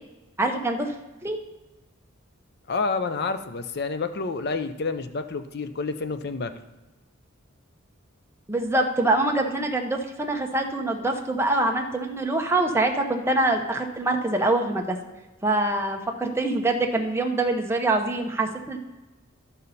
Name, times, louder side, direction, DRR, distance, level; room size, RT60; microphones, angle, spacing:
voice 1, 0.4-0.9 1.2-1.4 8.5-15.0 15.4-18.8, right 2 dB, 10° right, 2 dB, 0.8 m, -24 dB
voice 2, 2.7-6.5, left 4 dB, 50° left, 10 dB, 0.6 m, -29 dB
13.0 x 5.4 x 4.1 m, 1.1 s
head